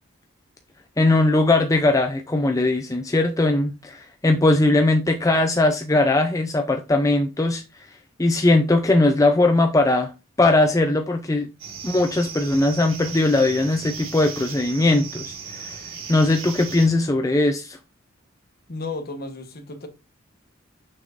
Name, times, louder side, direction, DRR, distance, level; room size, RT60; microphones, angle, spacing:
voice 1, 1.0-7.6 8.2-10.1 10.4-11.5 11.8-15.8 16.1-17.8, left 2 dB, 15° left, 0.5 m, -19 dB
sound 1, 11.6-16.9, right 5 dB, 85° right, 1.7 m, -37 dB
voice 2, 18.7-19.9, left 3 dB, 50° left, 1.2 m, -33 dB
6.2 x 6.1 x 2.5 m
head